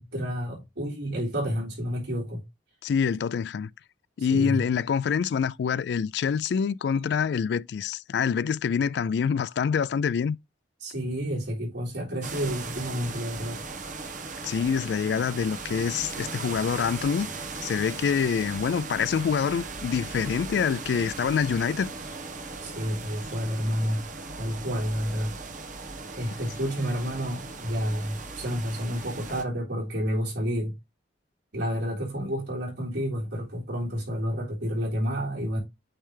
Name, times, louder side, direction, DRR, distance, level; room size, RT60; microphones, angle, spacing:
voice 1, 0.0-2.4 4.2-4.6 10.8-13.6 22.6-24.1 24.4-25.4 26.1-30.8 31.5-35.6, equal, 75° right, 3.5 m, -30 dB
voice 2, 2.8-3.7 4.2-10.4 14.4-17.3 17.6-21.9, left 6 dB, 65° left, 0.3 m, -26 dB
sound 1, 12.2-29.4, right 3 dB, 45° right, 1.1 m, -38 dB
8.8 x 3.3 x 3.3 m
head